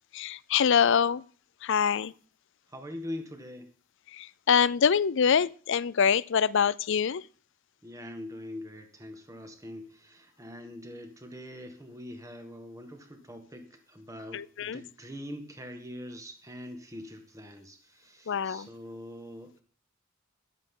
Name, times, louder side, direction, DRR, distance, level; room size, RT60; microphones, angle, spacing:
voice 1, 0.1-1.2 1.6-2.1 4.1-7.2 14.3-14.8 18.3-18.7, left 7 dB, 65° left, 0.5 m, -25 dB
voice 2, 2.7-3.7 7.8-19.6, left 1 dB, 15° right, 1.8 m, -43 dB
14.0 x 11.0 x 3.9 m
head